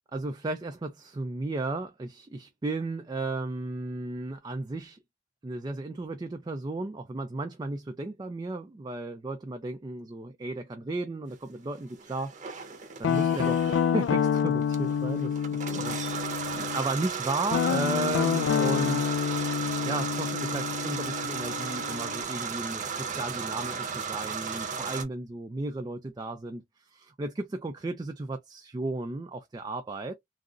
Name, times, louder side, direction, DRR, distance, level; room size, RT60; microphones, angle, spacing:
voice 1, 0.1-5.0 5.4-19.2 19.8-30.2, right 2 dB, 20° right, 0.3 m, -34 dB
sound 1, 12.0-25.0, right 6 dB, 40° right, 0.7 m, -35 dB
Guitar, 13.0-16.8 17.5-22.2, left 7 dB, 90° left, 0.3 m, -28 dB
3.6 x 2.0 x 2.5 m
head